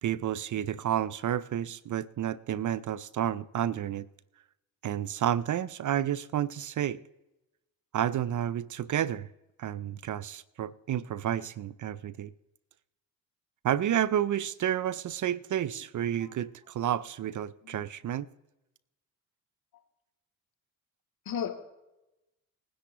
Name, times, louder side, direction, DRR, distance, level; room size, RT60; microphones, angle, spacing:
voice 1, 0.0-4.1 4.8-7.0 7.9-9.3 9.6-12.3 13.6-18.3, right 10 dB, 45° right, 0.6 m, -30 dB
voice 2, 15.7-15.8 16.2-16.4 17.6-17.9 21.2-21.5, left 8 dB, 55° left, 2.6 m, -36 dB
20.0 x 10.0 x 3.0 m
hypercardioid pair, 45°, 42 cm